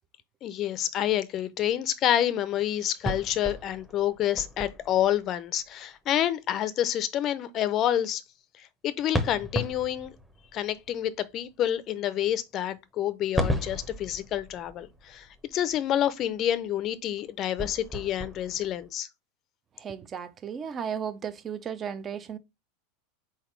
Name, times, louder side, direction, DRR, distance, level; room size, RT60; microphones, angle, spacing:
voice 1, 0.4-8.2 8.6-10.1 10.5-15.3 15.5-19.1, left 11 dB, 40° left, 0.6 m, -28 dB
sound 1, 3.0-5.4 9.1-11.0 13.4-16.2 16.7-16.9 17.2-18.9, equal, 5° right, 0.9 m, -34 dB
voice 2, 19.8-22.4, right 7 dB, 30° right, 0.6 m, -35 dB
4.2 x 3.9 x 3.1 m
hypercardioid pair, 90°, 0 cm